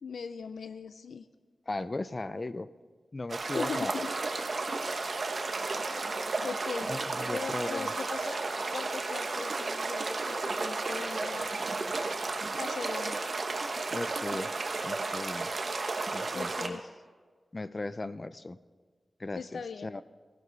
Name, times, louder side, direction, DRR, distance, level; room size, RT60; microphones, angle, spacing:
voice 1, 0.0-1.3 3.5-4.1 6.4-6.9 7.3-11.6 12.6-13.3 16.3-16.9 19.4-19.9, left 5 dB, 90° left, 11 dB, 0.4 m, -40 dB
voice 2, 1.7-2.7 3.1-3.9 6.8-7.9 13.9-14.5 14.8-15.5 16.1-16.8 17.5-18.6 19.2-20.0, left 2 dB, 30° left, 14 dB, 0.4 m, -37 dB
sound 1, 3.3-16.7, right 3 dB, 55° right, 1.1 m, -33 dB
16.5 x 16.0 x 4.0 m, 1.5 s
wide cardioid pair, 110°, 0 cm